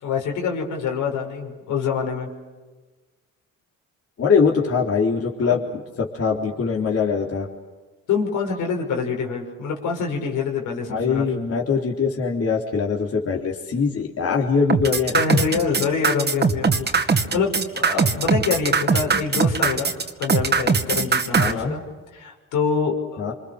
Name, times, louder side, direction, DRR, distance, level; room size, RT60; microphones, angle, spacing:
voice 1, 0.0-2.3 8.1-11.2 15.1-19.9 20.2-21.8 22.1-23.2, left 5 dB, 90° left, 1 dB, 5.8 m, -25 dB
voice 2, 4.2-5.6 6.0-7.5 10.9-15.2 21.3-21.7 23.2-23.3, left 5 dB, 50° left, -2 dB, 3.8 m, -22 dB
sound 1, 14.7-21.5, right 5 dB, 35° right, 2.4 m, -20 dB
27.5 x 26.0 x 6.7 m, 1.3 s
cardioid pair, 90°, 30 cm